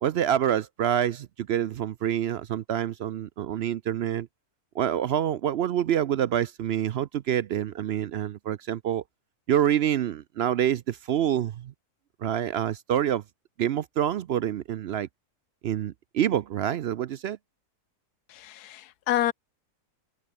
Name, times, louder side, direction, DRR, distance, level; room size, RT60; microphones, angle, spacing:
voice 1, 0.0-4.3 4.8-9.0 9.5-11.7 12.2-13.2 13.6-15.1 15.6-17.4, right 10 dB, 70° right, 0.6 m, -27 dB
voice 2, 18.3-19.3, left 13 dB, 90° left, 1.2 m, -28 dB
omnidirectional pair, 1.6 m